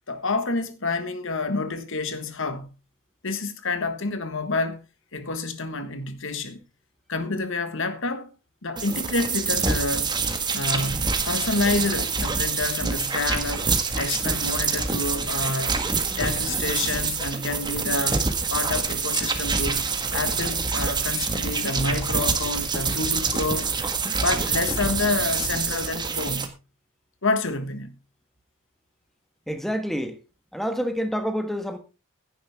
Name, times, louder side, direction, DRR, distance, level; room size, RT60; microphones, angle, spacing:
voice 1, 0.1-2.7 3.2-4.8 5.1-6.6 7.1-8.3 8.6-10.1 10.5-15.8 16.1-23.7 24.2-26.5 27.2-27.9, left 3 dB, 60° left, 1.6 m, -28 dB
sound 1, 8.8-26.5, right 4 dB, 20° right, 1.6 m, -26 dB
voice 2, 29.5-30.2 30.5-31.8, equal, ahead, 1.4 m, -27 dB
16.0 x 10.5 x 3.6 m
head